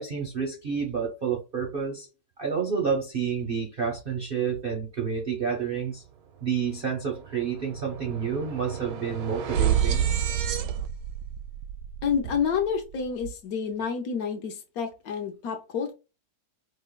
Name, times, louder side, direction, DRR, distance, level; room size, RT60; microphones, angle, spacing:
voice 1, 0.0-2.1 2.4-6.0 6.4-10.1, right 6 dB, 55° right, 0.6 m, -29 dB
sound 1, 6.4-6.5 6.8-13.1, right 9 dB, 90° right, 1.2 m, -30 dB
voice 2, 12.0-15.9, left 6 dB, 70° left, 1.0 m, -29 dB
5.3 x 2.1 x 2.2 m
omnidirectional pair, 1.8 m